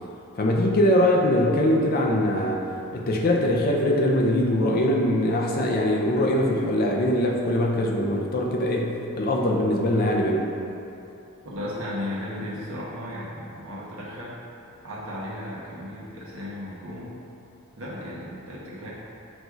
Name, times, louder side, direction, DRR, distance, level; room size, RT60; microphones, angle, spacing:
voice 1, 0.3-2.6 2.9-10.5, left 1 dB, 40° left, 0 dB, 0.4 m, -22 dB
voice 2, 11.4-14.4 14.8-17.2 17.8-18.9, left 1 dB, 65° right, -7 dB, 0.8 m, -35 dB
5.9 x 2.6 x 2.3 m, 2.8 s
head